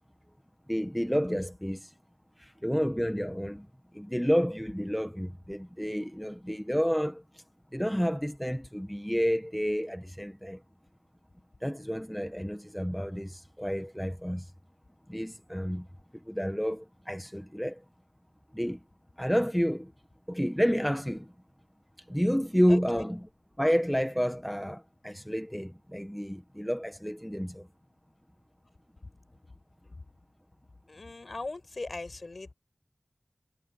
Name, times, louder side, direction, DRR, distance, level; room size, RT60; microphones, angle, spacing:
voice 1, 0.7-1.9 2.4-3.7 3.9-7.2 7.7-10.6 11.6-14.4 15.1-15.9 16.3-17.8 18.5-18.8 19.2-19.9 20.3-21.3 22.1-23.3 23.6-27.7, equal, 5° left, 1.2 m, -30 dB
voice 2, 22.7-23.0 30.9-32.5, left 3 dB, 60° left, 7.7 m, -39 dB
wide cardioid pair, 55°, 0 cm